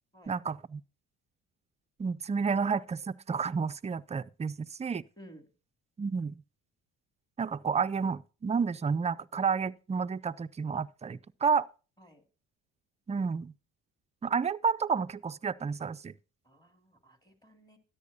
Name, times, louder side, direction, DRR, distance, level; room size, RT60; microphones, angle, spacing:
voice 1, 0.3-0.8 2.0-5.0 6.0-6.4 7.4-11.7 13.1-13.5 14.2-16.1, right 5 dB, 20° right, 0.4 m, -30 dB
voice 2, 16.4-17.8, equal, 10° left, 2.6 m, -55 dB
13.0 x 10.5 x 2.7 m
supercardioid pair, 75°, 37 cm